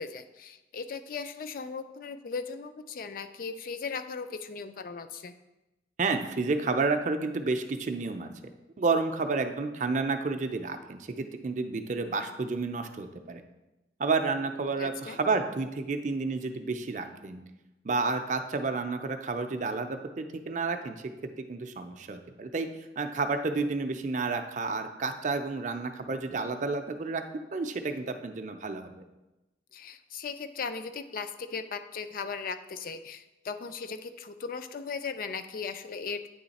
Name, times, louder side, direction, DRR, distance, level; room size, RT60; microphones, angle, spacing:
voice 1, 0.0-5.3 14.8-15.2 29.7-36.3, left 5 dB, 50° left, 10 dB, 0.4 m, -37 dB
voice 2, 6.0-8.3 8.8-13.4 14.0-17.4 17.8-21.1 21.4-22.7 23.0-27.2 27.5-29.0, right 3 dB, 45° right, 7 dB, 0.4 m, -30 dB
9.1 x 3.2 x 4.1 m, 1.0 s
head